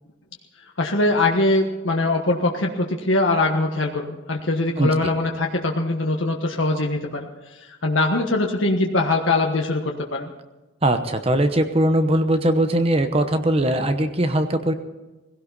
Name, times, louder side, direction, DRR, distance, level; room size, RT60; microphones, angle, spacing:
voice 1, 0.8-7.3 7.6-10.3, left 2 dB, 70° left, 1 dB, 1.4 m, -22 dB
voice 2, 4.8-5.1 10.8-14.7, right 1 dB, 30° right, 8 dB, 0.9 m, -20 dB
19.0 x 16.5 x 4.1 m, 1.1 s
head